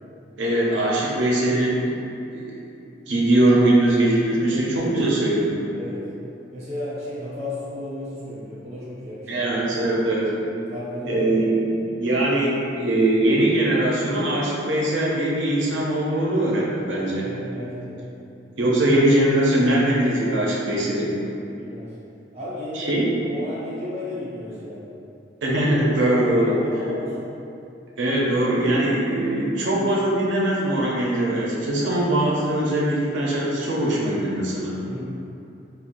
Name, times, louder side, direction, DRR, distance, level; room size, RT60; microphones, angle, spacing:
voice 1, 0.4-1.9 2.3-2.6 3.1-5.6 9.3-10.3 11.0-17.3 18.6-21.1 22.7-23.1 25.4-26.6 28.0-34.8, right 1 dB, 85° right, -4 dB, 0.6 m, -21 dB
voice 2, 4.4-4.8 5.7-6.1 6.5-9.4 10.5-11.3 17.2-18.0 20.4-21.1 21.6-22.0 22.3-24.8 26.1-27.2 34.9-35.0, left 1 dB, 35° right, -10 dB, 1.0 m, -34 dB
3.6 x 2.3 x 2.5 m, 2.7 s
head